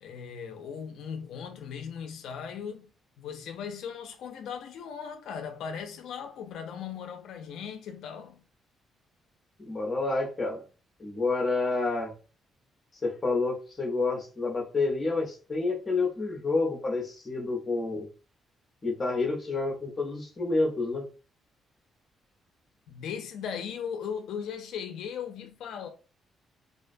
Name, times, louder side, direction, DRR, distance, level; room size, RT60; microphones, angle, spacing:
voice 1, 0.0-2.9 3.2-8.4 22.9-25.9, left 7 dB, 75° left, 0.3 m, -38 dB
voice 2, 9.6-10.6 11.0-12.1 13.0-18.1 18.8-21.1, left 3 dB, 20° left, 0.6 m, -29 dB
2.4 x 2.1 x 2.5 m
cardioid pair, 175°, 0 cm